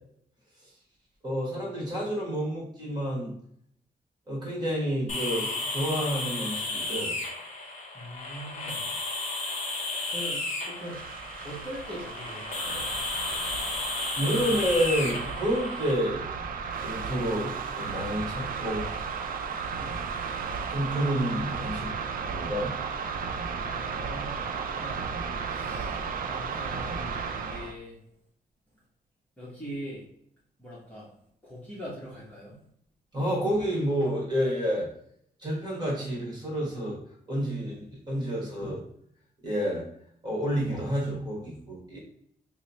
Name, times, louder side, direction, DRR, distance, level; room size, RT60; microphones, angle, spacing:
voice 1, 1.2-3.4 4.3-7.1 13.7-13.8 14.1-16.2 16.8-19.1 20.7-21.9 22.3-22.8 25.5-25.7 33.1-34.9 35.4-37.0 37.3-38.8 39.4-39.8 40.2-42.0, equal, 25° right, -5 dB, 1.4 m, -29 dB
sound 1, 5.1-15.9, left 2 dB, 45° left, 0.6 m, -33 dB
voice 2, 7.9-8.8 10.1-11.0 11.4-12.9 19.8-20.0 23.6-25.0 25.5-28.0 29.4-30.0 30.6-31.1 31.4-32.5, equal, 10° left, -8 dB, 0.9 m, -42 dB
sound 2, 10.7-27.7, right 5 dB, 65° right, 0.4 m, -34 dB
3.1 x 2.0 x 4.0 m, 0.69 s
wide cardioid pair, 140°, 16 cm